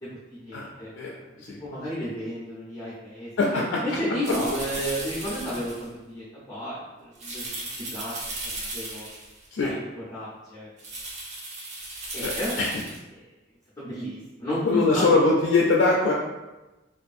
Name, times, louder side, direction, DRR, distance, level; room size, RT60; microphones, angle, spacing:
voice 1, 0.0-0.9 1.6-8.2 8.4-9.0 9.6-10.7 12.1-12.6 13.1-13.2 13.8-15.2, equal, 20° left, -9 dB, 0.6 m, -33 dB
sound 1, 4.2-5.8 7.1-9.5 10.8-13.0, right 2 dB, 40° right, 0.6 m, -36 dB
voice 2, 12.2-12.7 14.7-16.1, left 3 dB, 85° left, -2 dB, 0.3 m, -22 dB
2.5 x 2.4 x 2.5 m, 1.1 s
head